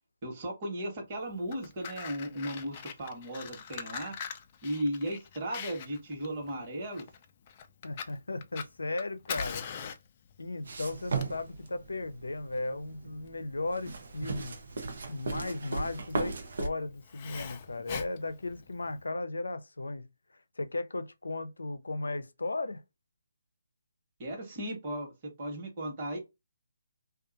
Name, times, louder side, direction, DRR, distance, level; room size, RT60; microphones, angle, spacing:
voice 1, 0.2-4.1 4.6-7.1 24.2-26.2, right 1 dB, 35° right, 1.2 m, -36 dB
Fire, 1.3-19.0, left 7 dB, 35° left, 0.4 m, -43 dB
voice 2, 7.8-9.9 10.4-14.6 15.1-20.1 20.6-22.8, left 2 dB, 85° left, 0.5 m, -36 dB
sound 1, 10.6-16.7, right 4 dB, 60° right, 0.6 m, -36 dB
2.6 x 2.4 x 2.5 m
figure-of-eight pair, 150°, 0 cm